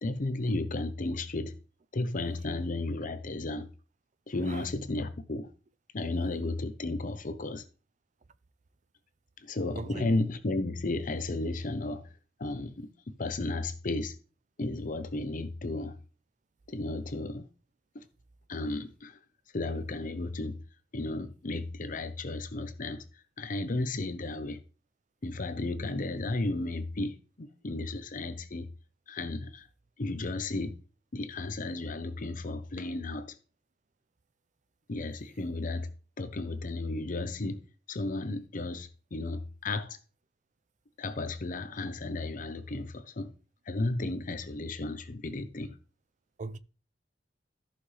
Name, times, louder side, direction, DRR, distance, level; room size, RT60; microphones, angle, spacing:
voice 1, 0.0-1.6 1.9-3.7 4.3-5.5 5.9-7.6 9.4-14.2 14.6-16.0 16.7-17.5 17.9-18.1 18.5-19.2 19.5-20.6 20.9-24.6 25.2-28.7 29.1-29.7 30.0-30.8 31.1-33.4 34.9-35.9 36.2-40.0 41.0-43.3 43.7-45.8, left 2 dB, 45° left, 0.7 m, -34 dB
voice 2, 9.8-10.1 46.4-46.6, right 3 dB, 40° right, 0.5 m, -38 dB
14.5 x 5.9 x 3.3 m
head